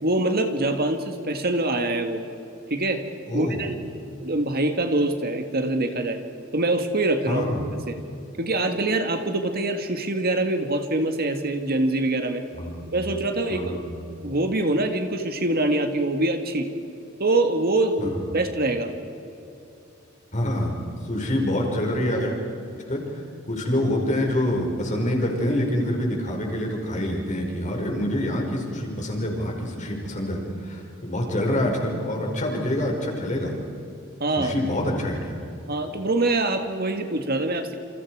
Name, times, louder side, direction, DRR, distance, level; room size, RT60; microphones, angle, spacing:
voice 1, 0.0-2.2 2.7-3.0 3.3-3.9 4.2-6.2 6.5-7.4 7.9-8.0 8.4-12.4 12.9-13.9 14.2-16.7 17.2-18.9 34.2-34.5 35.7-37.7, right 2 dB, 50° right, 6 dB, 1.8 m, -24 dB
voice 2, 3.3-3.6 7.3-7.7 12.5-13.1 13.5-14.0 18.0-18.3 20.3-20.7 21.0-22.3 22.7-33.6 34.4-35.4, left 1 dB, 40° left, 1 dB, 5.4 m, -26 dB
29.0 x 28.0 x 4.9 m, 2.8 s
head